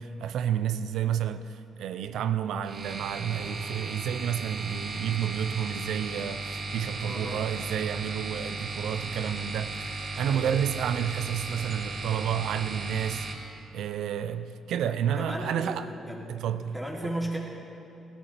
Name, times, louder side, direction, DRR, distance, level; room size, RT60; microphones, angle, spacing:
voice 1, 0.0-15.9 16.3-17.2, right 9 dB, 80° right, 0.6 m, -30 dB
sound 1, 2.6-13.3, right 3 dB, 55° right, 2.4 m, -36 dB
voice 2, 7.0-7.4 10.3-10.5 15.1-16.2 16.7-17.4, right 1 dB, 5° right, 3.2 m, -34 dB
17.5 x 11.5 x 5.8 m
cardioid pair, 90°, 0 cm